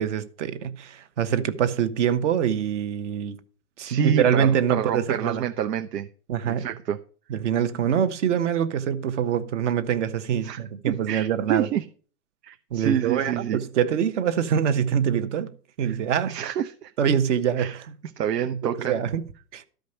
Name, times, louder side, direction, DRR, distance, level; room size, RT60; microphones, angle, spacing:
voice 1, 0.0-3.4 3.8-5.5 6.3-6.7 7.3-11.7 12.7-15.5 15.8-16.3 17.0-18.0 18.8-19.2 19.5-19.6, right 8 dB, 45° right, 1.2 m, -24 dB
voice 2, 3.8-6.1 6.5-7.0 10.4-11.9 12.4-13.6 15.8-16.0 16.3-16.9 17.6-17.8 18.2-18.9, right 9 dB, 75° right, 1.0 m, -28 dB
13.0 x 5.2 x 6.5 m
hypercardioid pair, 160°, 48 cm